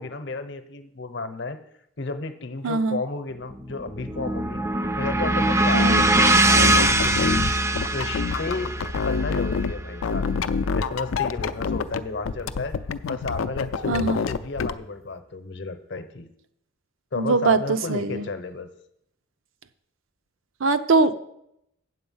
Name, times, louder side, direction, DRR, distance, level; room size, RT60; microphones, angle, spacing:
voice 1, 0.0-1.6 2.0-4.6 5.0-7.4 7.9-12.8 13.1-16.3 17.1-18.7, left 3 dB, 60° left, 9 dB, 0.8 m, -33 dB
voice 2, 2.6-3.0 5.7-6.0 13.9-14.2 17.2-18.3 20.6-21.1, right 3 dB, 80° right, 10 dB, 0.6 m, -22 dB
sound 1, 3.5-11.8, right 2 dB, 15° right, 0.4 m, -23 dB
sound 2, 6.0-9.7 10.0-12.0 12.2-14.7, left 5 dB, 80° left, 0.4 m, -27 dB
8.1 x 7.8 x 5.5 m, 0.77 s
head